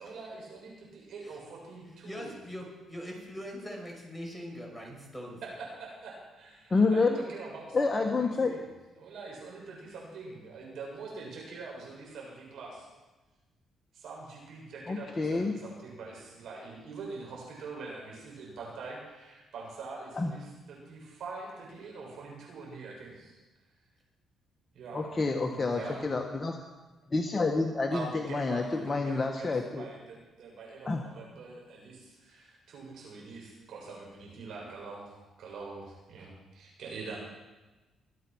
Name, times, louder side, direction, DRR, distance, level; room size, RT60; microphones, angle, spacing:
voice 1, 0.0-2.3 5.8-8.6 9.0-12.9 13.9-23.4 24.7-26.1 27.9-37.2, right 3 dB, 75° right, -2 dB, 7.4 m, -44 dB
voice 2, 1.9-5.4, equal, ahead, -1 dB, 6.3 m, -42 dB
voice 3, 6.7-7.2 7.7-8.6 14.9-15.5 20.2-20.3 24.9-26.6 27.1-29.8 30.8-31.0, left 3 dB, 25° left, 2 dB, 1.4 m, -28 dB
24.0 x 8.4 x 6.3 m, 1.1 s
cardioid pair, 90°, 0 cm